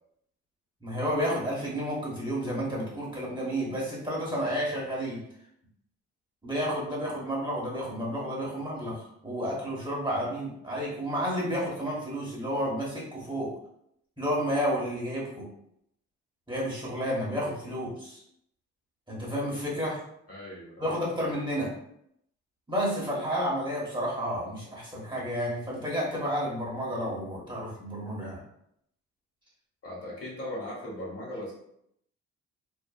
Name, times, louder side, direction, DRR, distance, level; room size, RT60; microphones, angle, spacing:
voice 1, 0.8-5.2 6.4-13.5 14.2-15.5 16.5-18.2 19.1-20.0 20.8-21.7 22.7-28.4, equal, 15° right, -5 dB, 1.0 m, -31 dB
voice 2, 20.3-21.0 29.8-31.5, left 1 dB, 50° left, -5 dB, 1.3 m, -38 dB
2.6 x 2.4 x 2.3 m, 0.73 s
cardioid pair, 90°, 30 cm